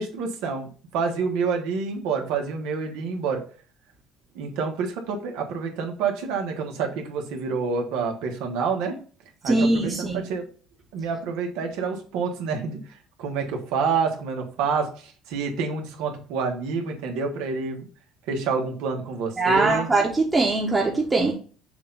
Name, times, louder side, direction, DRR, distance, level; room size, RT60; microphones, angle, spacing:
voice 1, 0.0-3.4 4.3-9.0 9.4-10.4 10.9-17.9 18.3-19.9, right 5 dB, 85° right, 1.4 m, -28 dB
voice 2, 9.4-10.2 19.4-21.3, right 2 dB, 20° right, 1.1 m, -21 dB
6.7 x 2.6 x 5.5 m
cardioid pair, 110°, 0 cm